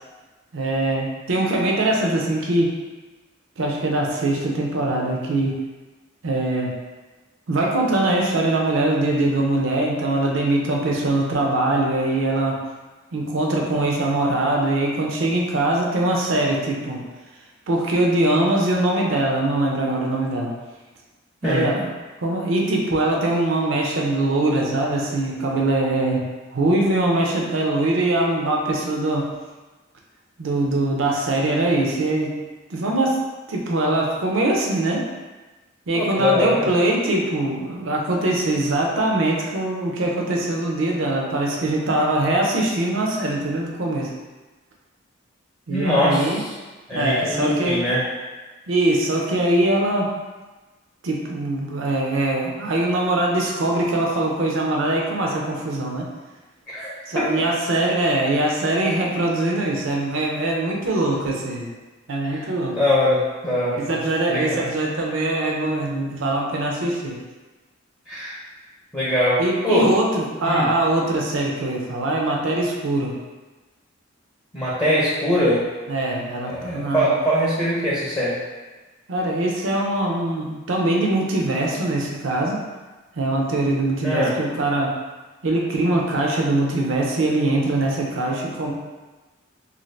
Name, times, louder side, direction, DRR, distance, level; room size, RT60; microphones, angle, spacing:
voice 1, 0.5-2.7 3.6-5.5 6.2-6.7 7.5-12.6 13.1-17.0 17.7-20.5 21.4-21.9 22.2-26.2 26.5-29.3 30.4-32.3 32.7-33.2 33.5-35.1 35.9-44.1 45.7-46.4 46.9-47.8 48.7-50.1 51.0-56.1 57.1-61.7 62.1-62.8 63.8-67.2 69.4-73.1 75.9-77.1 79.1-82.6 83.2-84.9 85.4-88.7, right 2 dB, 70° right, -1 dB, 0.5 m, -22 dB
voice 2, 35.9-36.7 45.7-46.5 46.9-48.0 56.7-57.3 62.3-62.4 62.7-64.0 64.3-64.6 68.1-68.4 68.9-69.4 69.6-69.9 70.4-70.7 74.5-75.6 76.4-78.4 84.0-84.4, left 1 dB, 15° left, -9 dB, 0.5 m, -22 dB
2.6 x 2.4 x 3.1 m, 1.2 s
head